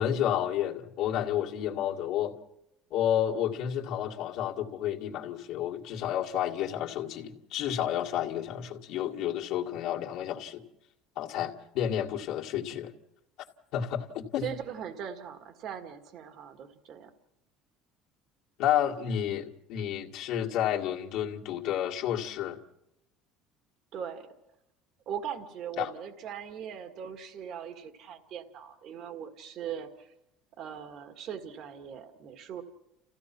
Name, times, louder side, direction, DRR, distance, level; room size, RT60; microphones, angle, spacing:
voice 1, 0.0-2.4 2.9-10.6 11.2-12.9 13.7-14.5 18.6-22.6 25.8-25.9, left 10 dB, 70° left, -1 dB, 2.0 m, -30 dB
voice 2, 14.4-17.1 23.9-24.3 25.1-30.1 30.6-32.6, right 8 dB, 55° right, 8 dB, 1.8 m, -40 dB
29.5 x 15.5 x 6.0 m, 0.87 s
cardioid pair, 120°, 0 cm